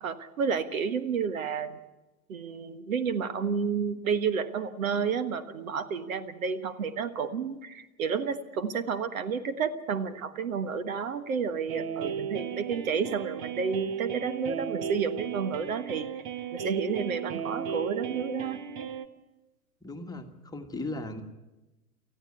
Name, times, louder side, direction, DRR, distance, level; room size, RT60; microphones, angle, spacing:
voice 1, 0.0-1.8 2.3-16.1 16.5-18.6, right 6 dB, 65° right, 12 dB, 1.4 m, -31 dB
sound 1, 11.7-19.1, right 8 dB, 40° right, 1.5 m, -35 dB
voice 2, 19.8-21.2, left 2 dB, 10° left, 4 dB, 1.6 m, -37 dB
19.0 x 14.5 x 9.5 m, 1.0 s
figure-of-eight pair, 100°, 44 cm